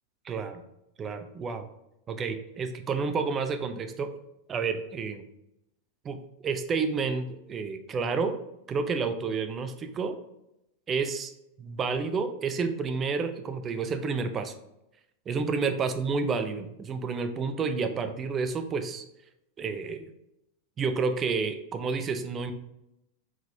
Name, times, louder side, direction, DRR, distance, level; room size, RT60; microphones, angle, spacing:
voice 1, 0.2-0.6 1.0-1.7 2.1-4.1 4.5-5.2 6.0-8.4 8.7-10.2 10.9-11.3 11.6-14.5 15.3-19.0 19.6-20.1 20.8-22.5, right 5 dB, 25° right, 8 dB, 0.5 m, -30 dB
4.4 x 3.8 x 2.7 m, 0.85 s
figure-of-eight pair, 90°, 0 cm